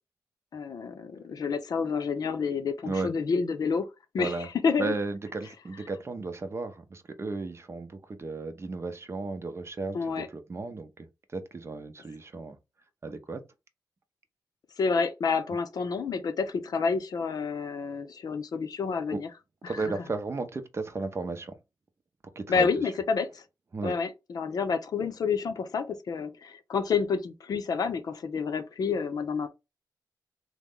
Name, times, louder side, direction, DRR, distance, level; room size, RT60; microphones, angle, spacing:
voice 1, 0.5-3.9 4.1-4.9 9.9-10.3 14.8-19.3 19.6-19.9 22.5-23.4 23.8-29.5, left 5 dB, 65° left, 0.5 m, -29 dB
voice 2, 4.2-4.5 4.8-11.1 11.3-12.6 13.0-13.4 19.1-19.2 19.7-21.5 22.4-22.7 23.7-23.9, right 3 dB, 40° right, 0.6 m, -34 dB
3.0 x 2.1 x 3.6 m
cardioid pair, 75°, 7 cm